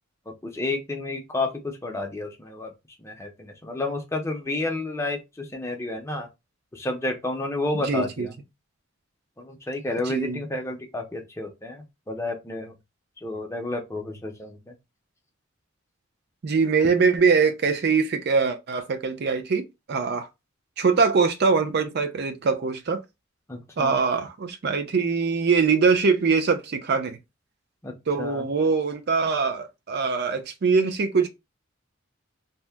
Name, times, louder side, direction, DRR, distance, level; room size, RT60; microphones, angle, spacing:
voice 1, 0.3-2.7 3.0-6.3 6.7-8.3 9.4-12.7 13.2-14.7 23.5-24.0 27.8-28.5, left 2 dB, 15° left, 0.5 m, -31 dB
voice 2, 7.7-8.3 10.1-10.4 16.4-20.3 20.8-23.0 23.8-27.2 28.1-31.3, right 5 dB, 50° right, 0.5 m, -23 dB
2.7 x 2.0 x 3.4 m
head